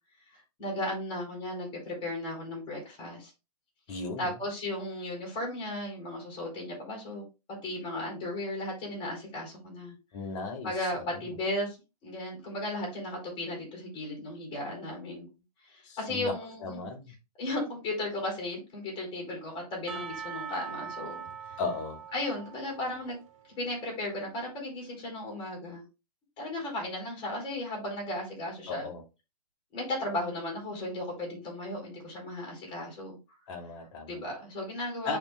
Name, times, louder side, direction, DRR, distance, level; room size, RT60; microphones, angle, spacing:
voice 1, 0.3-3.3 3.9-7.2 7.6-10.0 10.6-11.8 12.0-15.3 15.7-16.9 17.4-21.2 21.5-21.6 22.1-23.2 23.6-25.9 26.4-28.9 29.7-33.2 34.1-35.2, left 1 dB, 25° left, 3.9 m, -35 dB
voice 2, 3.9-4.3 10.1-10.7 11.0-11.1 15.9-16.4 16.6-17.1 21.6-22.0 28.7-29.0 33.5-34.1 35.0-35.2, left 4 dB, 50° left, 1.9 m, -36 dB
Percussion / Church bell, 19.9-23.8, right 7 dB, 55° right, 1.6 m, -42 dB
11.0 x 3.7 x 2.4 m
hypercardioid pair, 130°, 20 cm